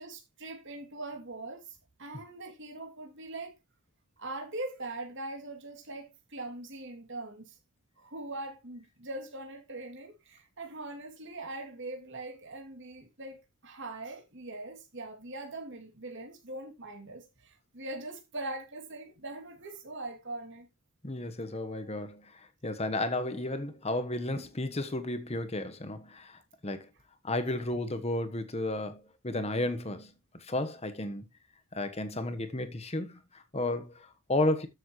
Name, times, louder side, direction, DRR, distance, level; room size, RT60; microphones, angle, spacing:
voice 1, 0.0-3.5 4.2-7.5 8.0-20.7 24.3-24.5, right 2 dB, 55° right, 2.9 m, -42 dB
voice 2, 21.0-26.9 27.2-31.3 31.7-34.7, left 2 dB, 30° left, 1.2 m, -33 dB
13.0 x 7.2 x 3.1 m
head